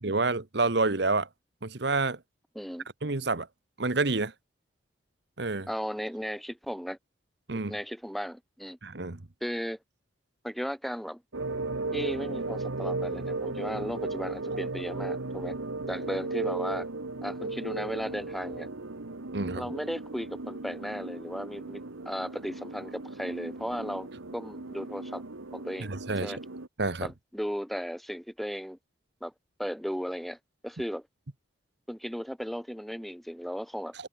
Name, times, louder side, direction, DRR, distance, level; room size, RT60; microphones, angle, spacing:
voice 1, 0.0-1.3 1.6-2.2 3.0-3.5 3.8-4.3 5.4-5.7 7.5-7.7 8.8-9.2 19.3-19.6 25.9-26.3 26.8-27.1, right 3 dB, 55° right, 1.2 m, -28 dB
voice 2, 2.5-2.9 5.7-7.0 7.5-8.8 9.4-9.8 10.4-11.2 11.9-15.5 15.9-16.9 17.2-18.7 19.6-25.2 25.5-25.9 26.2-26.4 27.0-28.8 29.2-29.3 29.6-30.4 30.6-31.1 31.9-33.9, equal, ahead, 1.1 m, -35 dB
sound 1, 11.3-26.7, right 2 dB, 90° right, 1.5 m, -36 dB
head